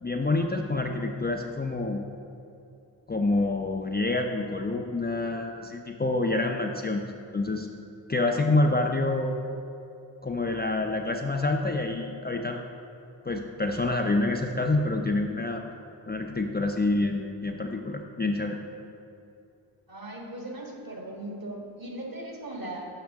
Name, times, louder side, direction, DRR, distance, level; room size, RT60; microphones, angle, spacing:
voice 1, 0.0-2.0 3.1-7.0 7.3-7.7 8.1-9.4 10.2-12.6 13.2-15.6 16.1-18.6, left 2 dB, 20° left, 2 dB, 0.5 m, -27 dB
voice 2, 19.9-22.9, right 1 dB, 45° right, 0 dB, 1.6 m, -38 dB
7.5 x 5.7 x 3.5 m, 2.6 s
cardioid pair, 40°, 48 cm